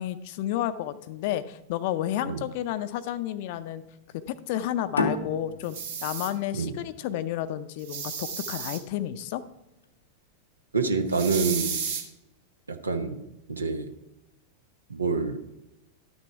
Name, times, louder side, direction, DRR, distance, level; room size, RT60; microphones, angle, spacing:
voice 1, 0.0-3.8 4.3-5.8 6.0-9.4, left 12 dB, 50° left, 13 dB, 0.6 m, -31 dB
sound 1, 4.9-8.2, left 3 dB, 75° left, 0.9 m, -32 dB
sound 2, 5.6-6.3 7.8-8.8 11.1-12.0, right 6 dB, 60° right, 1.5 m, -33 dB
voice 2, 10.7-11.8 12.7-13.9 14.9-15.4, right 4 dB, 75° right, 7 dB, 0.9 m, -27 dB
12.0 x 6.4 x 4.6 m, 0.92 s
figure-of-eight pair, 90°, 0 cm